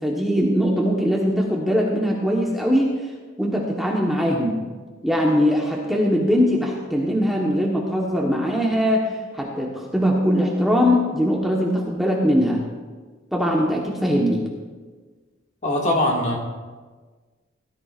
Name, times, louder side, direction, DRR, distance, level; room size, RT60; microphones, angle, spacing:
voice 1, 0.0-3.0 3.4-4.6 5.0-9.1 9.3-12.6 13.3-14.4, equal, ahead, -3 dB, 1.1 m, -21 dB
voice 2, 15.6-16.4, left 1 dB, 35° left, -1 dB, 2.0 m, -21 dB
17.5 x 13.5 x 2.5 m, 1.4 s
head